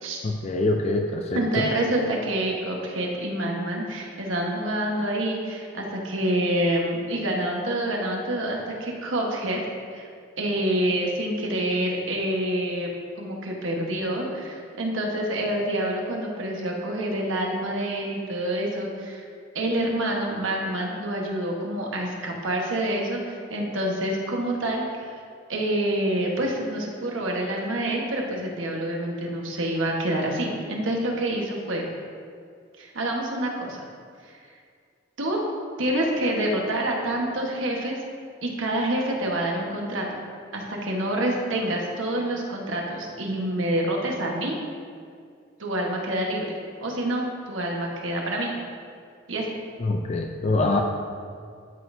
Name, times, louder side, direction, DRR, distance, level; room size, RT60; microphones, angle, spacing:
voice 1, 0.2-1.7 49.8-50.8, left 2 dB, 35° left, 3 dB, 0.4 m, -25 dB
voice 2, 1.3-9.6 9.9-10.1 10.4-12.9 13.2-19.2 19.5-25.1 25.5-31.8 32.8-33.8 35.2-35.4 35.8-38.0 38.4-40.1 40.5-44.6 45.6-46.5 46.8-48.5 49.3-49.5, right 1 dB, 90° right, -1 dB, 1.3 m, -27 dB
12.0 x 6.1 x 2.7 m, 2.2 s
head